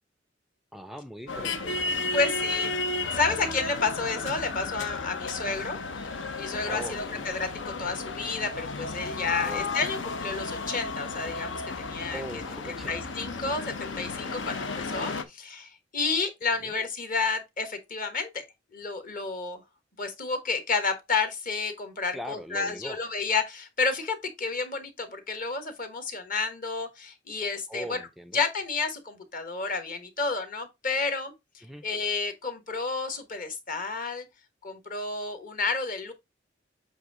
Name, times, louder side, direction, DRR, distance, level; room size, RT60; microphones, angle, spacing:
voice 1, 0.7-2.3 6.7-7.3 9.4-9.7 12.1-13.2 16.6-16.7 22.1-23.0 27.7-28.4 31.6-31.8, right 1 dB, ahead, 0.4 m, -41 dB
sound 1, 1.3-15.2, left 3 dB, 80° left, 0.8 m, -33 dB
voice 2, 2.1-2.7 3.1-5.8 6.1-12.4 12.7-18.4 18.7-19.6 20.0-28.0 28.3-34.2 34.6-36.1, left 4 dB, 50° left, 1.3 m, -31 dB
7.9 x 2.7 x 4.8 m
head